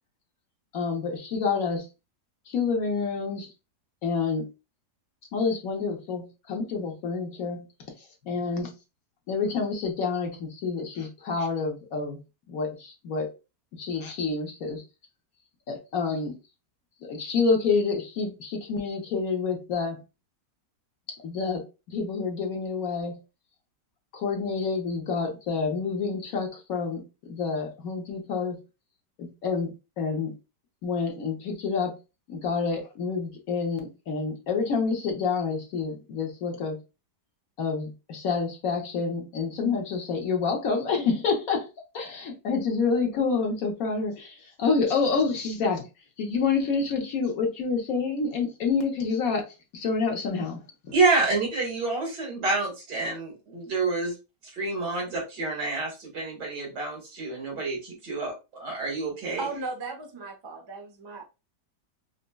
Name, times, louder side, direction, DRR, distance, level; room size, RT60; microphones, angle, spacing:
voice 1, 0.7-1.8 2.5-3.5 4.0-4.5 5.3-7.6 8.2-8.7 9.3-12.2 12.5-13.3 13.8-14.8 15.7-16.4 17.1-20.0 21.2-23.2 24.1-28.6 29.2-30.3 30.8-32.0 32.3-36.8 37.6-41.7 41.9-45.8 46.2-49.4 49.7-50.6, left 4 dB, 60° left, 1.2 m, -28 dB
voice 2, 50.9-54.1 54.4-59.5, right 3 dB, 90° right, 2.3 m, -28 dB
voice 3, 59.4-61.2, right 3 dB, 35° right, 0.4 m, -36 dB
5.1 x 2.2 x 2.2 m
omnidirectional pair, 1.8 m